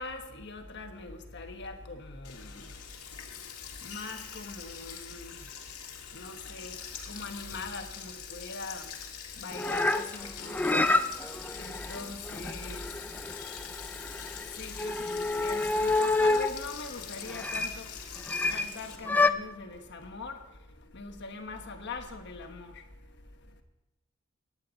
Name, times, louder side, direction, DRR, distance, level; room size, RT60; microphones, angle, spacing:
voice 1, 0.0-2.7 3.8-5.5 6.1-6.8 7.0-9.0 9.4-11.0 11.5-12.9 14.5-17.9 18.5-20.4 20.9-22.8, left 3 dB, 55° left, 1.3 m, -42 dB
Sink (filling or washing), 2.2-19.0, left 8 dB, 85° left, 1.7 m, -44 dB
sound 1, 9.5-16.6 17.3-17.8 18.3-18.7 19.1-19.3, left 2 dB, 5° left, 0.3 m, -28 dB
16.0 x 9.9 x 4.0 m
head